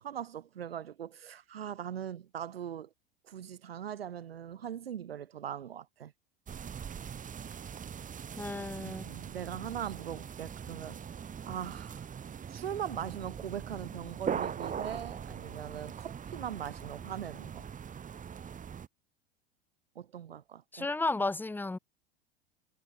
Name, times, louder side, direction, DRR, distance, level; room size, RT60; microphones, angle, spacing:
voice 1, 0.0-2.9 3.3-6.1 8.8-11.0 11.4-12.0 12.5-17.7 20.0-20.9, right 9 dB, 80° right, 3.5 m, -40 dB
sound 1, 6.5-18.9, right 7 dB, 25° right, 3.6 m, -41 dB
voice 2, 8.4-9.1 20.7-21.8, left 2 dB, 5° left, 1.0 m, -33 dB
hypercardioid pair, 85°, 30 cm